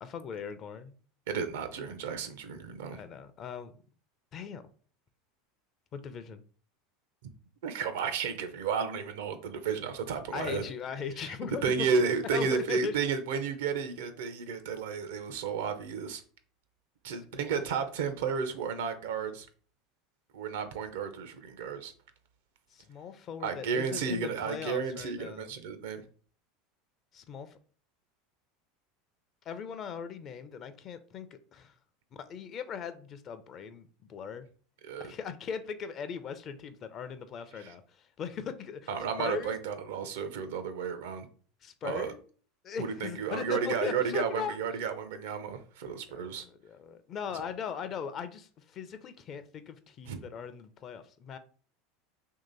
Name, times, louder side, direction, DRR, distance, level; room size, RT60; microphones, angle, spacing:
voice 1, 0.0-0.9 2.9-3.7 4.3-4.6 5.9-6.4 10.3-11.9 12.3-12.9 17.3-17.6 22.7-25.5 27.1-27.6 29.5-31.7 32.1-34.5 35.0-38.9 39.2-39.5 41.6-42.2 42.6-44.5 46.1-51.4, left 6 dB, 45° left, 11 dB, 0.5 m, -39 dB
voice 2, 1.3-3.0 7.6-10.6 11.2-11.3 11.6-16.2 17.0-19.5 20.3-21.9 23.4-26.0 34.8-35.1 37.5-37.7 38.9-41.3 41.8-42.1 42.8-46.4 50.1-50.2, right 6 dB, 75° right, 9 dB, 0.6 m, -32 dB
3.0 x 2.8 x 3.9 m, 0.42 s
hypercardioid pair, 90°, 0 cm